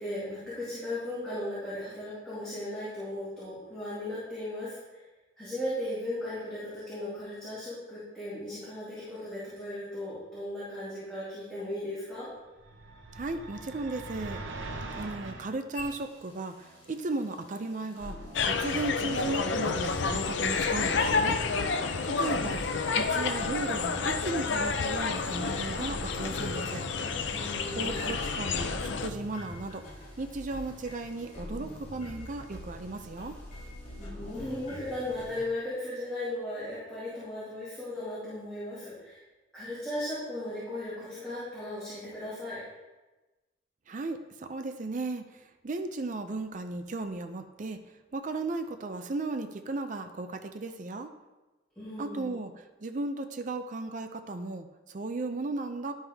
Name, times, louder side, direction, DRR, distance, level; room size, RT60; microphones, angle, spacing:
voice 1, 0.0-4.8 5.4-12.3 22.3-22.6 27.3-28.2 34.0-39.2 39.5-42.6 51.8-52.4, left 1 dB, 5° left, -13 dB, 2.5 m, -36 dB
sound 1, 12.6-15.5, right 2 dB, 85° right, 0.8 m, -41 dB
voice 2, 13.1-14.4 15.0-18.2 18.4-21.4 22.0-22.6 22.9-26.8 27.8-29.8 30.2-33.3 43.9-45.2 45.6-47.8 48.1-51.1 52.0-52.5 52.8-55.9, right 2 dB, 40° right, 7 dB, 0.5 m, -35 dB
sound 2, 15.7-35.4, left 1 dB, 35° left, 2.2 m, -44 dB
sound 3, 18.3-29.1, left 4 dB, 70° left, 0.5 m, -29 dB
11.0 x 5.4 x 3.5 m, 1.1 s
head